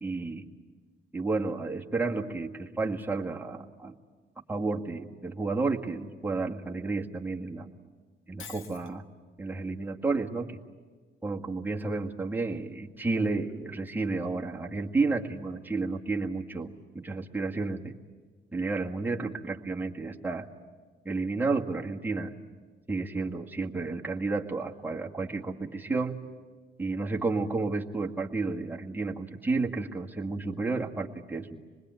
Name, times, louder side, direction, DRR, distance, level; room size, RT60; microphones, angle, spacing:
voice 1, 0.0-0.4 1.1-3.9 4.5-7.7 8.3-9.0 9.4-10.6 11.2-17.9 18.5-20.5 21.1-22.3 22.9-26.2 26.8-31.6, right 3 dB, 10° right, -1 dB, 1.9 m, -31 dB
Shatter, 8.4-8.9, left 7 dB, 85° left, 1.6 m, -45 dB
26.0 x 20.5 x 9.3 m, 1.4 s
cardioid pair, 90°, 20 cm